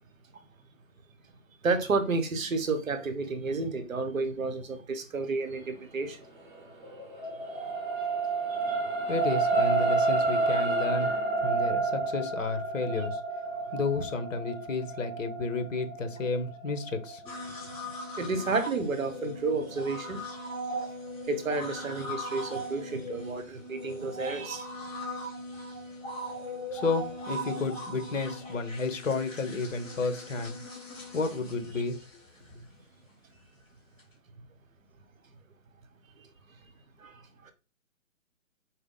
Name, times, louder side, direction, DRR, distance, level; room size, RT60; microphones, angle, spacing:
voice 1, 1.6-6.3 7.5-8.9 13.6-13.7 17.5-20.2 21.3-24.7 26.4-26.8 32.7-32.8 36.2-36.5 37.0-37.5, right 3 dB, 70° right, 1.0 m, -32 dB
sound 1, 6.4-18.9 19.4-19.6, right 3 dB, 35° right, 0.9 m, -30 dB
voice 2, 9.1-11.1 11.4-13.2 13.7-17.2 26.7-30.6 31.1-32.0, left 3 dB, 65° left, 1.1 m, -32 dB
sound 2, 17.2-32.5 34.0-34.1, equal, 10° left, 1.6 m, -39 dB
4.6 x 2.2 x 3.7 m
hypercardioid pair, 170°, 42 cm